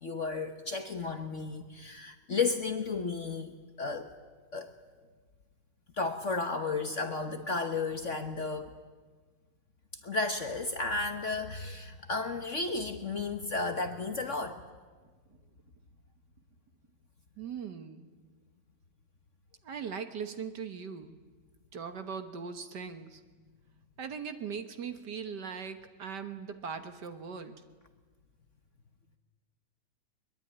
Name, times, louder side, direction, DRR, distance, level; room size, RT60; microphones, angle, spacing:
voice 1, 0.0-4.1 4.5-4.7 5.9-8.8 10.0-14.6, left 3 dB, 45° left, 7 dB, 1.3 m, -33 dB
voice 2, 17.4-18.1 19.6-21.2 21.7-23.2 24.0-27.6, right 6 dB, 55° right, 9 dB, 1.8 m, -40 dB
22.5 x 22.0 x 9.9 m, 1.4 s
omnidirectional pair, 2.3 m